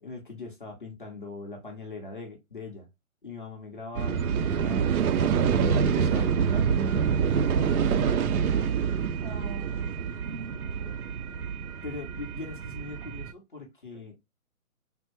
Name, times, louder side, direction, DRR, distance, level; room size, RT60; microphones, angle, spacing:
voice 1, 0.0-2.9 3.2-4.9 5.4-6.8 7.4-8.2 11.8-14.2, left 3 dB, 35° left, 0.6 m, -41 dB
sound 1, 3.9-13.3, right 7 dB, 80° right, 0.5 m, -26 dB
voice 2, 9.2-11.2, right 5 dB, 35° right, 1.2 m, -45 dB
3.4 x 2.1 x 3.0 m
hypercardioid pair, 175°, 43 cm